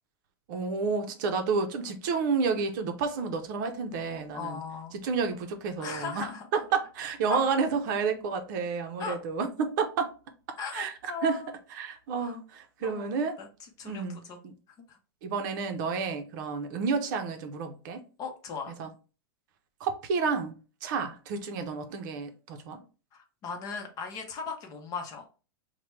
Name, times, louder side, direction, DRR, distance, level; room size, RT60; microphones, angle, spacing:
voice 1, 0.5-4.6 4.9-10.1 10.7-10.9 11.2-11.4 11.7-13.4 13.8-14.5 15.2-18.0 18.8-18.9 19.8-22.8, right 5 dB, 55° right, 0.7 m, -30 dB
voice 2, 4.3-4.9 5.8-6.5 7.3-7.4 9.0-9.2 10.6-11.5 12.2-12.3 12.8-13.1 13.4-13.5 13.8-14.4 14.9-15.0 18.2-18.8 23.1-25.2, left 5 dB, 30° left, 0.7 m, -38 dB
4.6 x 2.2 x 3.1 m
supercardioid pair, 150°, 13 cm